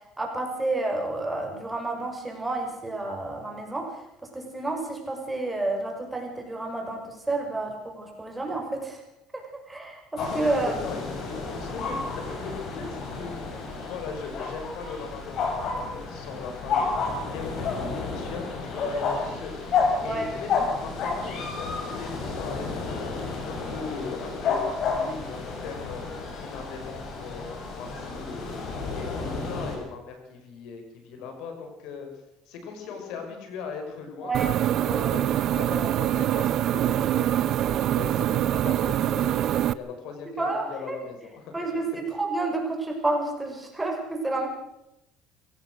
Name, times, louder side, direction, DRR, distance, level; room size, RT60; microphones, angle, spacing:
voice 1, 0.2-3.9 4.3-9.0 9.3-9.4 9.7-10.7 20.0-20.3 34.2-35.1 40.4-41.0 41.5-44.5, right 2 dB, 10° right, 2 dB, 6.0 m, -30 dB
sound 1, 10.2-29.8, left 4 dB, 55° left, 7.0 m, -31 dB
voice 2, 10.6-13.6 13.9-32.1 32.5-34.3 34.8-42.0, left 5 dB, 75° left, 5 dB, 5.6 m, -39 dB
sound 2, 34.3-39.7, right 12 dB, 55° right, 0.7 m, -24 dB
23.5 x 17.0 x 6.5 m, 0.87 s
cardioid pair, 110°, 0 cm